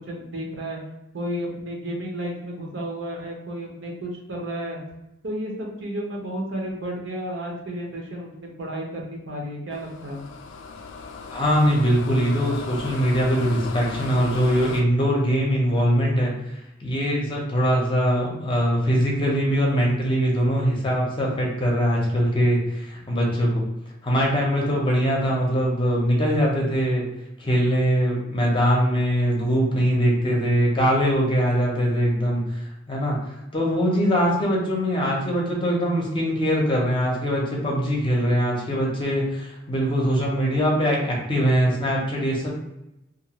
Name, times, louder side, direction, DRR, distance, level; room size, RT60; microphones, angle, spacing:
voice 1, 0.1-0.8 1.1-4.8 5.2-10.2, right 1 dB, 70° right, -1 dB, 0.8 m, -32 dB
sound 1, 9.7-14.8, left 4 dB, 80° left, 0.3 m, -36 dB
voice 2, 11.3-16.3 16.8-23.6 24.0-27.1 27.4-32.5 32.9-33.2 33.5-42.5, equal, 25° left, -2 dB, 0.6 m, -22 dB
2.6 x 2.4 x 2.9 m, 0.90 s
head